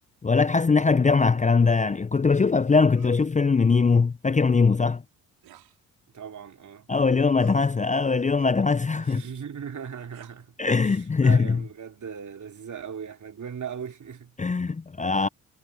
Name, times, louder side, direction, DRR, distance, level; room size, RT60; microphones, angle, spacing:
voice 1, 0.2-5.0 6.9-9.2 10.6-11.6 14.4-15.3, left 4 dB, 20° left, 0.7 m, -21 dB
sound 1, 2.9-3.3 5.4-5.8 7.3-7.8 10.1-10.4, right 12 dB, 70° right, 5.4 m, -51 dB
voice 2, 6.1-6.9 9.0-10.5 10.8-14.4 15.1-15.2, right 7 dB, 50° right, 3.6 m, -38 dB
hypercardioid pair, 50°, 38 cm